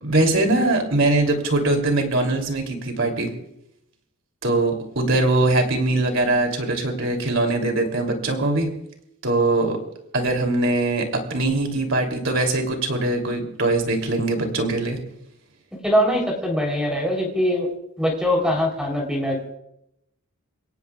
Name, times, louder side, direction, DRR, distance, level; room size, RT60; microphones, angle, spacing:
voice 1, 0.0-3.3 4.4-8.7 9.2-9.8 10.1-15.0, right 2 dB, 60° right, 3 dB, 3.1 m, -22 dB
voice 2, 15.8-17.7 18.0-19.4, equal, 5° right, 0 dB, 3.6 m, -22 dB
29.5 x 17.5 x 2.4 m, 0.79 s
head